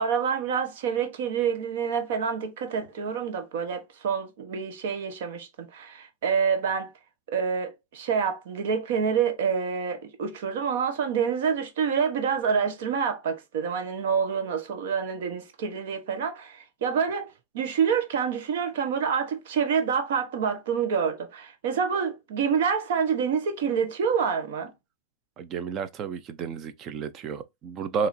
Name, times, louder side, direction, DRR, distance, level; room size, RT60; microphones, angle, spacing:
voice 1, 0.0-6.9 7.3-17.3 17.5-24.7, right 6 dB, 70° right, 1.1 m, -27 dB
voice 2, 25.4-28.1, right 6 dB, 30° right, 0.5 m, -32 dB
5.0 x 3.0 x 2.7 m
supercardioid pair, 160°, 0 cm